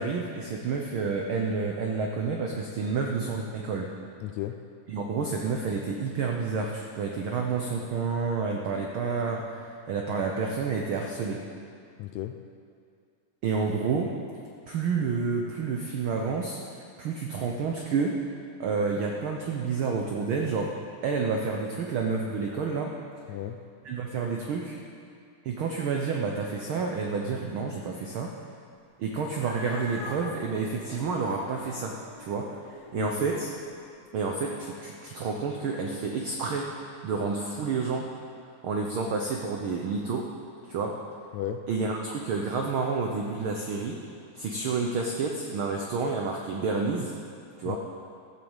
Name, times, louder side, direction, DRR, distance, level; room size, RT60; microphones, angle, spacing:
voice 1, 0.0-3.9 4.9-11.5 13.4-14.2 14.7-18.2 18.6-20.8 21.0-23.0 23.8-24.8 25.4-28.3 29.0-33.5 34.1-36.8 37.0-38.1 38.6-40.3 40.6-41.0 41.7-44.0 44.3-47.2 47.6-47.8, right 4 dB, 85° right, 1 dB, 1.1 m, -29 dB
voice 2, 4.2-4.6 12.0-12.4 23.3-23.6 32.9-33.4 41.3-41.7 47.6-47.8, left 11 dB, 80° left, 7 dB, 1.7 m, -34 dB
Cat, 29.2-33.8, left 1 dB, 15° left, 1.7 m, -44 dB
14.0 x 8.0 x 7.2 m, 2.3 s
omnidirectional pair, 3.6 m